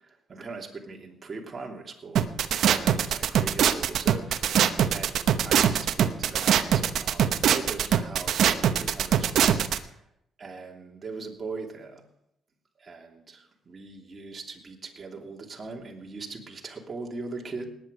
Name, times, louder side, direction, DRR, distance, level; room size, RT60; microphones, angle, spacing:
voice 1, 0.0-2.3 2.7-10.0 10.4-12.0 12.8-17.7, right 4 dB, 35° right, 0 dB, 3.0 m, -40 dB
sound 1, 2.2-9.8, right 9 dB, 70° right, 0.9 m, -22 dB
19.0 x 9.5 x 5.2 m, 0.78 s
cardioid pair, 90°, 0 cm